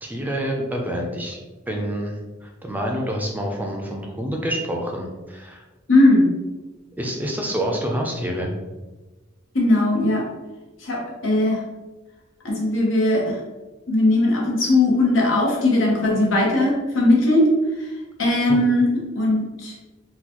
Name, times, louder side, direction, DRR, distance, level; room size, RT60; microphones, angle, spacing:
voice 1, 0.0-1.4 1.7-5.6 7.0-8.5 18.5-18.6, equal, 10° right, 1 dB, 0.4 m, -27 dB
voice 2, 5.9-6.3 9.5-10.3 10.8-11.6 12.4-13.4 13.9-17.9 18.2-19.7, left 1 dB, 90° left, -2 dB, 0.9 m, -19 dB
3.8 x 2.2 x 2.9 m, 1.2 s
head